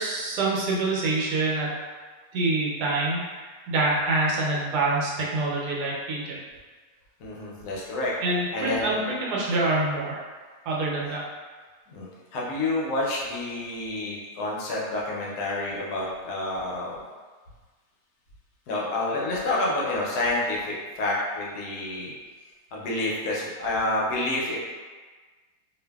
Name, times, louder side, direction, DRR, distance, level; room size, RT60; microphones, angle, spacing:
voice 1, 0.0-1.8 2.3-6.4 8.2-10.2 10.7-11.2, right 2 dB, 80° right, -4 dB, 1.2 m, -26 dB
voice 2, 7.2-8.1 8.5-9.0 11.9-17.0 18.7-22.1 22.7-24.6, left 2 dB, 80° left, -4 dB, 1.1 m, -28 dB
2.5 x 2.5 x 2.2 m, 1.4 s
omnidirectional pair, 1.7 m